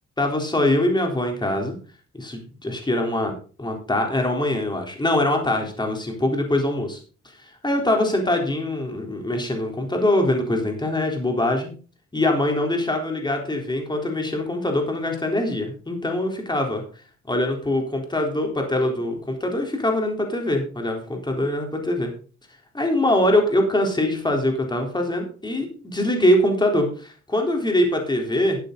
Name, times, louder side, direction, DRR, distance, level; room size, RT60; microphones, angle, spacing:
voice 1, 0.2-1.8 2.1-7.0 7.4-11.7 12.1-16.8 17.3-22.1 22.7-28.6, left 1 dB, 15° left, 3 dB, 4.0 m, -23 dB
13.0 x 8.9 x 4.0 m, 0.38 s
cardioid pair, 90°, 30 cm